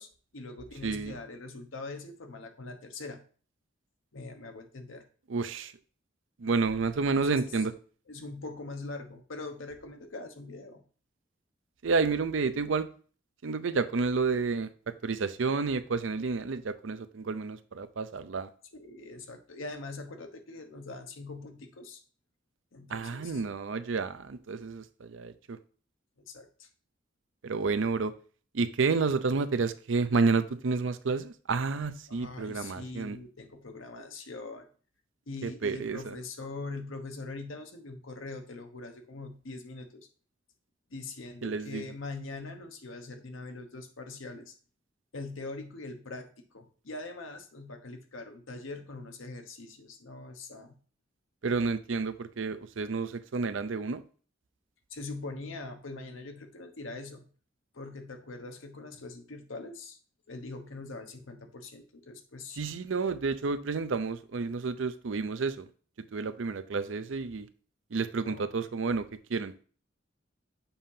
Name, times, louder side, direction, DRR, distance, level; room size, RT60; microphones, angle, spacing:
voice 1, 0.0-3.2 4.1-5.0 7.1-7.6 8.1-10.8 18.7-22.0 22.7-23.4 26.2-26.7 32.1-34.7 35.3-40.1 40.9-44.5 45.1-50.7 54.9-57.3 57.7-60.0 60.3-62.6 68.2-68.7, left 3 dB, 90° left, 6 dB, 1.0 m, -42 dB
voice 2, 0.8-1.1 5.3-5.7 6.4-7.7 11.8-12.9 13.4-18.5 22.9-25.6 27.4-28.1 28.5-33.2 35.4-36.1 41.4-41.8 51.4-54.0 62.6-65.7 66.1-67.5 67.9-69.5, right 4 dB, 75° right, 12 dB, 0.5 m, -30 dB
7.0 x 2.7 x 5.6 m, 0.41 s
head